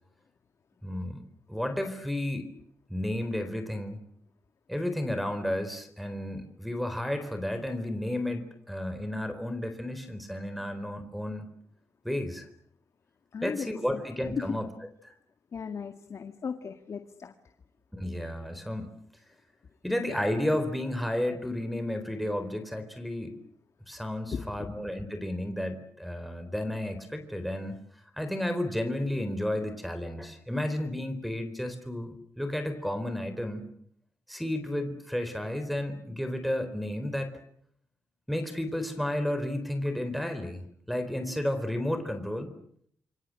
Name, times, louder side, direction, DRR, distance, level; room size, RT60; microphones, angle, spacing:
voice 1, 0.8-1.2 1.5-2.5 2.9-4.0 4.7-11.5 12.0-12.5 13.4-14.7 15.0-15.1 17.9-18.9 19.8-23.3 23.9-27.8 28.2-33.6 34.3-37.3 38.3-42.5, left 1 dB, ahead, 6 dB, 4.1 m, -32 dB
voice 2, 13.3-13.7 15.5-17.3 24.3-24.5, left 6 dB, 55° left, 7 dB, 2.0 m, -37 dB
28.0 x 23.5 x 7.7 m, 0.69 s
cardioid pair, 90°, 6 cm